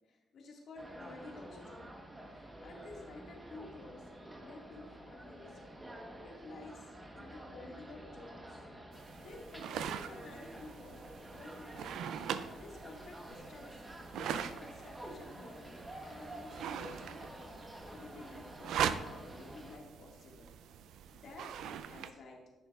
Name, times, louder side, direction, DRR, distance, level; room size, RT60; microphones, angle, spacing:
voice 1, 0.1-1.9 2.2-4.1 4.4-5.8 6.2-11.0 11.3-12.0 12.3-15.8 16.1-17.2 17.9-18.8 19.4-20.5 21.1-22.4, left 2 dB, 65° left, -1 dB, 1.8 m, -52 dB
sound 1, 0.8-19.8, right 1 dB, 15° right, 1.1 m, -50 dB
sound 2, 8.9-22.1, right 8 dB, 80° right, 0.4 m, -42 dB
9.8 x 6.7 x 2.4 m, 1.2 s
cardioid pair, 90°, 0 cm